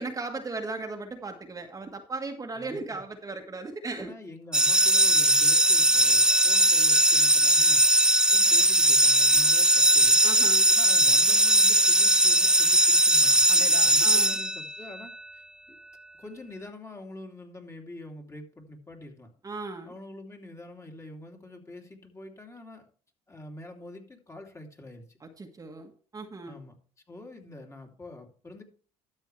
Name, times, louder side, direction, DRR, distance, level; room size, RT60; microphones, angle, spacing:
voice 1, 0.0-4.1 10.2-10.7 13.5-14.4 19.4-19.9 25.4-26.6, right 3 dB, 25° right, 4 dB, 1.6 m, -37 dB
voice 2, 2.5-3.0 4.0-7.8 8.3-10.2 10.7-13.4 13.8-15.8 16.2-19.3 19.8-22.9 23.3-25.2 26.4-26.7 27.1-28.6, left 2 dB, 20° left, 2 dB, 2.9 m, -45 dB
sound 1, 4.5-14.9, right 1 dB, 5° right, 0.3 m, -20 dB
12.5 x 7.4 x 3.3 m, 0.42 s
supercardioid pair, 85°, 13 cm